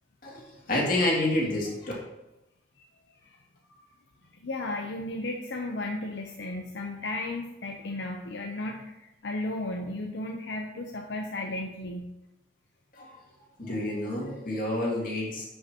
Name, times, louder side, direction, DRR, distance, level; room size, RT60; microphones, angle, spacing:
voice 1, 0.7-1.9 12.9-13.1 13.6-15.4, left 1 dB, 50° left, -4 dB, 2.4 m, -28 dB
voice 2, 4.4-12.1, left 2 dB, 80° left, 1 dB, 0.7 m, -34 dB
10.0 x 5.6 x 2.9 m, 0.92 s
head